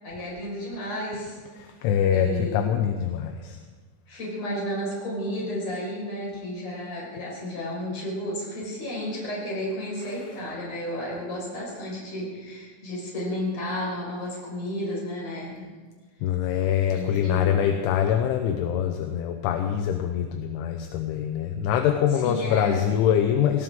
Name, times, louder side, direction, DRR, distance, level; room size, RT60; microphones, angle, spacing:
voice 1, 0.0-1.4 2.1-2.7 4.1-15.7 16.9-17.6 22.2-22.8, left 1 dB, 35° left, -4 dB, 6.1 m, -32 dB
voice 2, 1.6-3.6 16.2-23.6, left 9 dB, 80° left, 5 dB, 3.2 m, -24 dB
21.0 x 17.5 x 3.8 m, 1.4 s
omnidirectional pair, 5.7 m